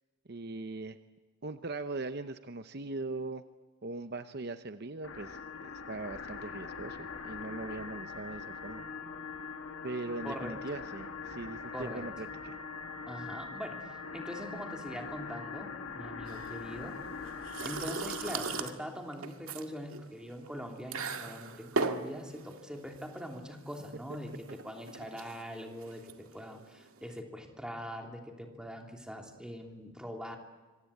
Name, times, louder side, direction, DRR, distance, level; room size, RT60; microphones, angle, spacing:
voice 1, 0.3-1.0 1.4-3.4 3.8-8.8 9.8-12.6, right 3 dB, 50° right, 10 dB, 0.8 m, -40 dB
sound 1, 5.0-18.8, left 5 dB, 80° left, 2.2 m, -42 dB
voice 2, 11.7-12.0 13.1-17.1 17.6-30.4, equal, 5° right, 2 dB, 3.0 m, -42 dB
sound 2, 16.3-27.2, right 4 dB, 85° right, 2.0 m, -39 dB
26.0 x 24.5 x 8.6 m, 1.3 s
head